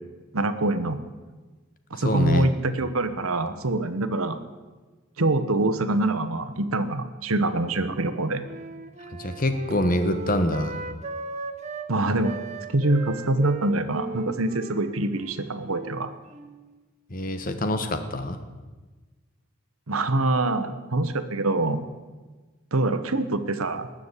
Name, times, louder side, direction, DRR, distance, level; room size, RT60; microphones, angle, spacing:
voice 1, 0.3-1.0 1.9-4.4 5.2-8.4 11.9-12.3 12.7-16.1 19.9-21.9 22.7-23.9, right 2 dB, 85° right, 11 dB, 1.1 m, -25 dB
voice 2, 2.0-2.5 9.2-10.8 17.1-18.4, left 1 dB, 40° left, 8 dB, 1.2 m, -25 dB
Wind instrument woodwind instrument, 7.9-11.9 12.2-16.7, right 3 dB, 35° right, 1.0 m, -38 dB
19.5 x 7.2 x 8.3 m, 1.3 s
head